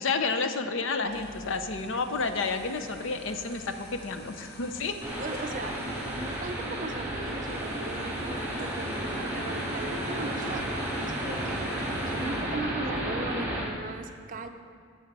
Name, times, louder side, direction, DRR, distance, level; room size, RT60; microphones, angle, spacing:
voice 1, 0.0-5.0, left 4 dB, 70° left, 8 dB, 0.6 m, -30 dB
sound 1, 1.0-12.6, equal, 50° left, 1.9 m, -47 dB
sound 2, 5.0-13.6, right 1 dB, 15° right, 2.5 m, -32 dB
voice 2, 5.2-14.5, right 3 dB, 40° right, 7 dB, 0.5 m, -39 dB
11.5 x 7.3 x 4.1 m, 2.1 s
head